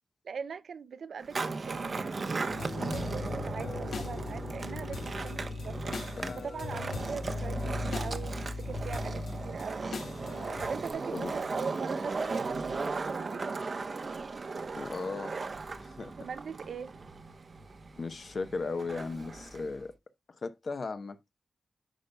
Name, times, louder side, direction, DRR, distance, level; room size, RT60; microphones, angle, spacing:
voice 1, 0.2-5.8 6.1-9.8 10.6-13.6 16.2-17.0, right 6 dB, 80° right, 0.5 m, -41 dB
Skateboard, 1.2-19.8, right 4 dB, 60° right, 0.8 m, -37 dB
sound 1, 2.5-10.9, left 3 dB, 85° left, 1.4 m, -38 dB
voice 2, 2.8-3.2 6.2-6.5 11.1-11.3 14.7-15.3 15.8-16.1 18.0-19.9 20.4-21.2, left 4 dB, 65° left, 0.8 m, -36 dB
10.0 x 5.3 x 2.2 m
cardioid pair, 50°, 0 cm